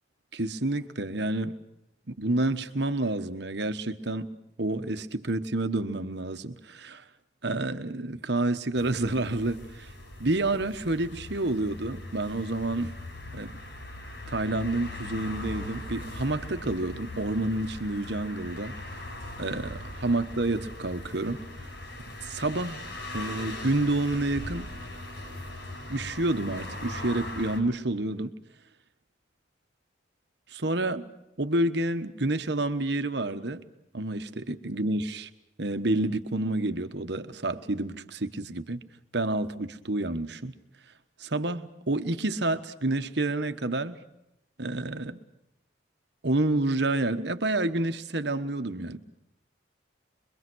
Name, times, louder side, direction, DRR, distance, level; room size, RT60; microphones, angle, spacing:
voice 1, 0.3-1.6 2.1-4.3 4.6-7.0 7.4-9.9 10.2-12.9 13.3-13.6 14.3-18.8 19.4-21.4 22.2-22.9 23.1-24.7 25.9-28.3 30.5-31.1 31.4-33.7 33.9-35.3 35.6-38.8 39.1-40.5 41.2-44.0 44.6-45.2 46.2-49.0, right 2 dB, 60° right, 1.2 m, -29 dB
sound 1, 8.8-27.6, left 2 dB, 60° left, 5.9 m, -40 dB
25.0 x 22.5 x 6.3 m
head